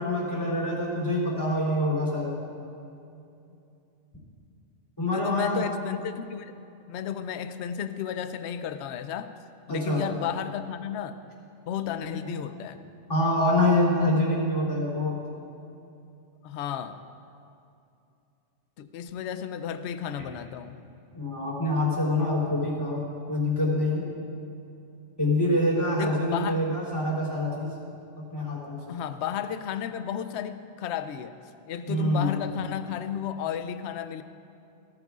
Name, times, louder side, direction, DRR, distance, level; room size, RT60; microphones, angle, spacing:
voice 1, 0.0-2.4 5.0-5.7 9.7-10.1 12.1-12.2 13.1-15.2 21.2-23.0 23.3-24.1 25.2-27.7 28.3-29.0 31.9-32.3, left 1 dB, 20° left, -5 dB, 3.6 m, -25 dB
voice 2, 5.1-6.6 6.9-9.3 9.7-11.2 11.7-12.8 16.4-17.0 18.8-20.8 25.9-26.7 28.9-31.3 31.7-34.2, left 9 dB, 75° left, 11 dB, 0.8 m, -33 dB
18.0 x 14.5 x 2.4 m, 2.7 s
omnidirectional pair, 1.2 m